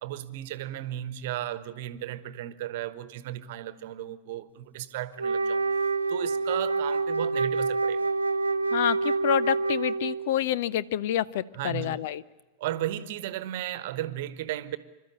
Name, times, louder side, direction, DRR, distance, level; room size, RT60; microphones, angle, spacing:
voice 1, 0.0-5.7 6.1-8.1 11.5-12.0 12.6-14.8, right 13 dB, 50° right, 1.2 m, -35 dB
Wind instrument woodwind instrument, 5.2-10.4, right 3 dB, 75° right, 0.6 m, -27 dB
voice 2, 8.7-12.2, left 12 dB, 55° left, 0.6 m, -28 dB
26.5 x 13.0 x 8.7 m
figure-of-eight pair, 90°, 0 cm